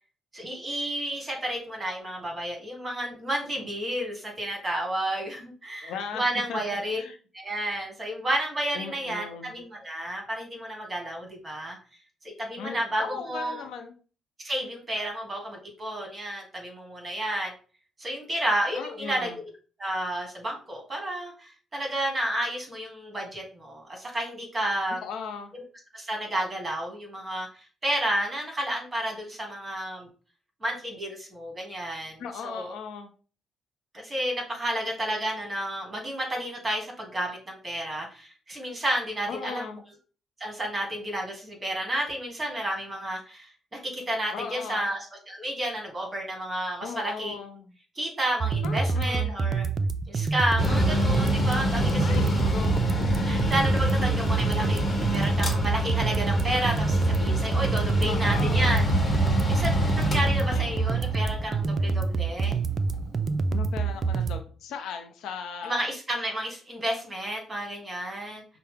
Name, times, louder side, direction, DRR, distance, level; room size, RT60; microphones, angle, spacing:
voice 1, 0.3-7.0 7.3-11.8 12.2-13.7 14.4-17.5 18.0-19.3 19.8-25.0 25.5-25.6 25.9-27.5 27.8-30.1 30.6-32.7 33.9-39.7 40.4-45.0 45.3-47.4 48.0-49.7 50.1-52.4 53.2-58.8 59.5-62.6 65.6-68.4, right 1 dB, 25° right, 0 dB, 1.9 m, -31 dB
voice 2, 5.8-6.2 6.5-6.6 6.9-7.2 8.7-9.5 12.6-13.9 18.7-19.4 25.0-25.5 32.2-33.1 39.3-39.8 44.3-44.9 46.8-47.7 48.6-49.4 52.0-52.8 58.0-58.9 60.5-60.7 63.5-65.8, left 6 dB, 85° left, 6 dB, 0.6 m, -37 dB
sound 1, 48.4-64.4, right 4 dB, 45° right, 0.3 m, -27 dB
Mechanical fan, 50.6-63.9, equal, 25° left, 1.2 m, -27 dB
5.6 x 2.0 x 3.4 m, 0.38 s
cardioid pair, 90°, 0 cm